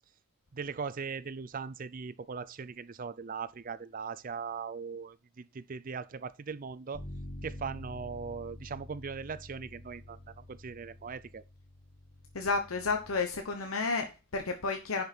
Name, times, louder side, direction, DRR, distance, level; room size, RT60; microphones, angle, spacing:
voice 1, 0.5-7.0 7.4-11.4, right 5 dB, 40° right, 0.5 m, -39 dB
Bass guitar, 6.9-13.2, left 1 dB, 65° left, 3.5 m, -47 dB
voice 2, 12.3-15.0, left 4 dB, 85° left, 1.1 m, -31 dB
10.5 x 5.3 x 4.3 m
head